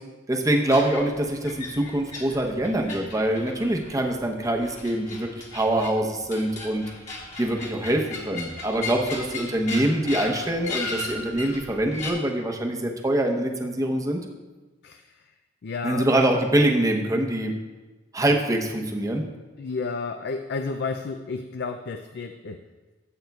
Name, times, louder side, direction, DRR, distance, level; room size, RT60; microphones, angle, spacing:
voice 1, 0.3-6.8 7.4-14.2 15.8-17.5 18.1-19.2, right 1 dB, 20° right, 2 dB, 0.8 m, -24 dB
sound 1, 0.7-12.1, left 3 dB, 40° left, 1.7 m, -37 dB
voice 2, 14.8-15.3 15.6-16.1 19.6-22.6, left 4 dB, 60° left, 7 dB, 0.4 m, -32 dB
13.0 x 7.9 x 2.3 m, 1.2 s
head